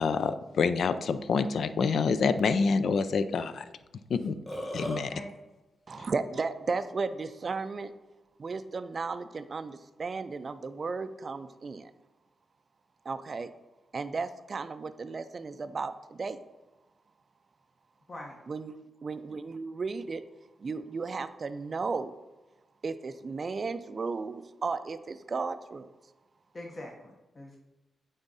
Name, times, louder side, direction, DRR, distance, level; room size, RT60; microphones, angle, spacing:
voice 1, 0.0-3.6 4.1-4.4 4.7-5.1, left 5 dB, 70° left, 12 dB, 0.4 m, -27 dB
Burping eructation, 4.2-5.0, equal, 20° left, 2.1 m, -35 dB
voice 2, 5.9-7.9 8.4-11.9 13.1-13.5 13.9-16.4 18.5-18.7 19.0-20.2 20.6-22.1 22.8-25.9, right 4 dB, 45° right, 10 dB, 0.4 m, -34 dB
voice 3, 26.5-27.6, left 1 dB, 35° left, 0 dB, 0.9 m, -43 dB
8.9 x 3.6 x 4.0 m, 1.1 s
cardioid pair, 75°, 0 cm